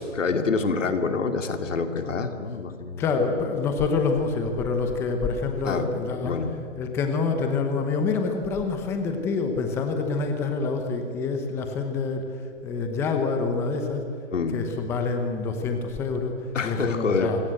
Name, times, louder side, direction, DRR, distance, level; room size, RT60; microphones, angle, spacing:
voice 1, 0.0-3.0 5.6-5.9 6.2-6.5 14.3-14.6 16.5-17.3, left 4 dB, 85° left, 7 dB, 2.9 m, -26 dB
voice 2, 3.0-6.4 6.8-14.0 14.5-17.4, left 4 dB, 5° left, 5 dB, 0.9 m, -27 dB
26.0 x 20.5 x 7.8 m, 2.4 s
hypercardioid pair, 165°, 37 cm